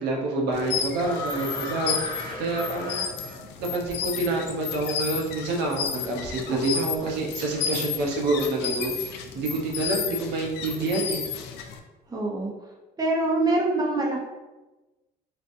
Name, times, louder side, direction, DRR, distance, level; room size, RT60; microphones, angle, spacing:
voice 1, 0.0-2.0 2.4-3.0 3.6-11.2, right 2 dB, 85° right, 0 dB, 0.8 m, -27 dB
sound 1, 0.5-11.8, left 7 dB, 80° left, 0.5 m, -32 dB
sound 2, 1.0-3.8 4.9-5.0 6.1-7.9 8.2-8.6, left 1 dB, 25° left, 1.2 m, -37 dB
voice 2, 12.1-12.5 13.0-14.2, right 2 dB, 20° right, -2 dB, 0.8 m, -24 dB
5.1 x 2.5 x 2.6 m, 1.1 s
cardioid pair, 110°, 17 cm